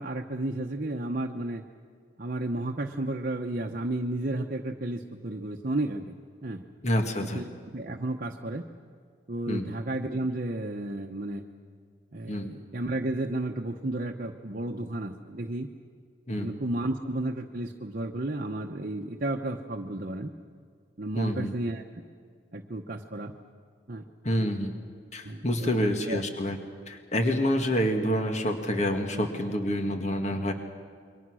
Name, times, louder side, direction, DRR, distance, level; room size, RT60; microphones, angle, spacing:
voice 1, 0.0-1.6 2.2-6.1 6.4-6.6 7.3-8.6 9.3-11.5 12.1-15.7 16.4-20.3 21.0-21.8 22.5-23.3 23.9-24.0 25.2-26.2 29.1-29.3, right 1 dB, 50° right, 2 dB, 1.0 m, -32 dB
voice 2, 6.8-7.4 9.5-9.7 12.3-12.5 16.3-16.6 21.2-21.5 24.2-24.7 25.1-26.6 26.9-30.5, equal, 40° left, 5 dB, 1.7 m, -27 dB
28.0 x 23.5 x 6.3 m, 2.1 s
head